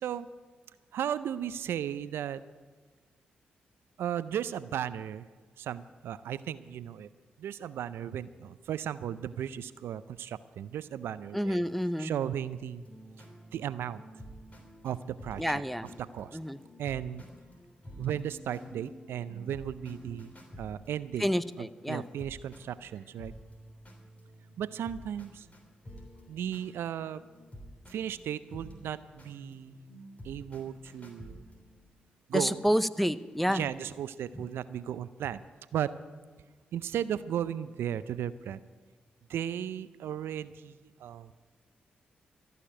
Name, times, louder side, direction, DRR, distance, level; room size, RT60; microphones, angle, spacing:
voice 1, 0.9-2.4 4.0-5.3 5.6-7.1 7.4-11.6 12.0-12.8 13.5-14.0 14.8-15.4 16.0-16.4 16.8-17.2 18.0-21.3 21.6-23.3 24.6-25.5 26.3-27.2 27.9-29.8 30.2-31.4 32.3-32.6 33.5-35.4 35.7-35.9 36.7-38.6 39.3-41.3, right 10 dB, 75° right, 15 dB, 0.4 m, -35 dB
voice 2, 11.3-12.1 15.4-15.9 16.3-16.6 21.2-22.1 32.3-33.7 34.3-34.4, equal, 5° left, 15 dB, 0.6 m, -29 dB
sound 1, 12.8-31.8, equal, 35° left, 3.3 m, -50 dB
14.0 x 6.7 x 10.0 m, 1.4 s
hypercardioid pair, 40°, 4 cm